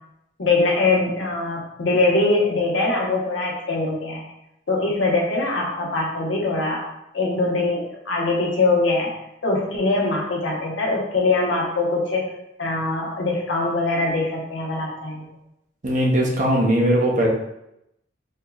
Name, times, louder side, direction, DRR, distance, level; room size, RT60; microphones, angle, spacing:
voice 1, 0.4-4.2 4.7-6.8 7.1-9.1 9.4-12.2 12.6-15.2, left 3 dB, 75° left, -3 dB, 1.1 m, -22 dB
voice 2, 15.8-17.3, right 1 dB, 40° right, -1 dB, 0.7 m, -19 dB
4.4 x 2.9 x 2.3 m, 0.84 s
head